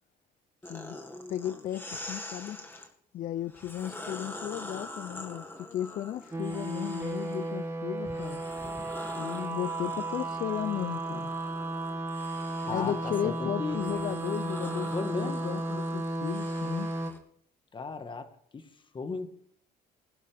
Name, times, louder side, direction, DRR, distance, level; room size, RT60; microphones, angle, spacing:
voice 1, 0.6-1.0 1.3-8.4 9.2-11.3 12.7-16.9, left 11 dB, 50° left, 0.5 m, -35 dB
sound 1, 0.6-2.9 3.5-7.6 8.0-17.2, left 1 dB, 15° left, 1.9 m, -44 dB
sound 2, 6.3-17.1, right 2 dB, 15° right, 1.9 m, -34 dB
voice 2, 12.6-13.8 14.9-15.4 17.7-18.7 18.9-19.3, left 4 dB, 30° left, 1.5 m, -35 dB
20.5 x 11.5 x 3.5 m
cardioid pair, 110°, 17 cm